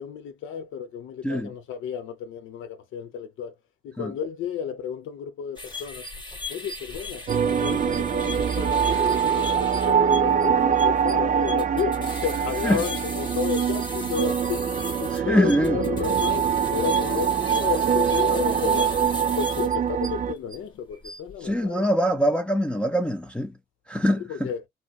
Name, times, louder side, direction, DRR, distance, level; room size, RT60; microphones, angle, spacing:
voice 1, 0.0-3.5 3.8-6.0 6.5-19.0 19.4-21.9 24.2-24.6, left 7 dB, 80° left, 0.8 m, -32 dB
sound 1, 5.6-20.6 20.9-21.3, left 3 dB, 20° left, 1.6 m, -38 dB
sound 2, 7.3-20.3, right 7 dB, 40° right, 0.6 m, -24 dB
voice 2, 15.3-15.8 21.4-23.5 23.9-24.5, equal, 5° left, 0.4 m, -23 dB
4.4 x 2.0 x 2.4 m
cardioid pair, 90°, 20 cm